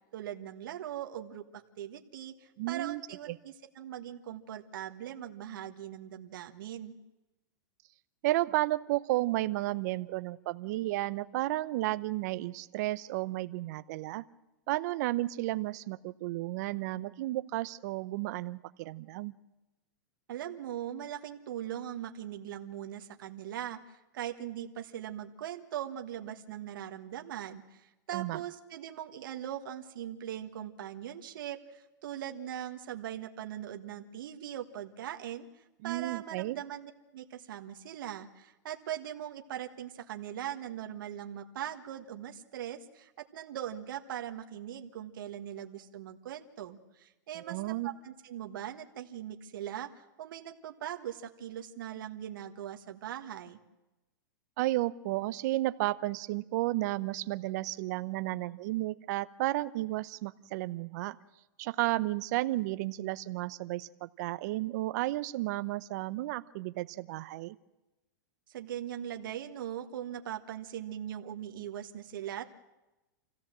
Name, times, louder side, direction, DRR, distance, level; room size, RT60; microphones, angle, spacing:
voice 1, 0.1-6.9 20.3-53.6 68.5-72.4, right 11 dB, 70° right, 4 dB, 1.6 m, -40 dB
voice 2, 2.6-3.0 3.3-3.4 8.2-14.2 14.7-19.3 28.1-28.4 35.8-36.6 47.3-47.9 54.6-61.2 61.6-67.6, right 17 dB, 55° right, 14 dB, 0.8 m, -33 dB
26.0 x 16.0 x 7.6 m, 1.0 s
supercardioid pair, 145°, 11 cm